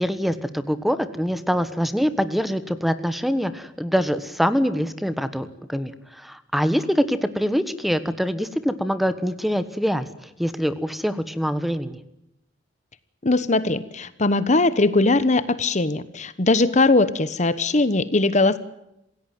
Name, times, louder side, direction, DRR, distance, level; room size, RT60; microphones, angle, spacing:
voice 1, 0.0-12.0, equal, ahead, 12 dB, 1.3 m, -24 dB
voice 2, 13.2-18.6, left 2 dB, 40° left, 14 dB, 1.1 m, -20 dB
27.0 x 16.5 x 9.4 m, 0.84 s
head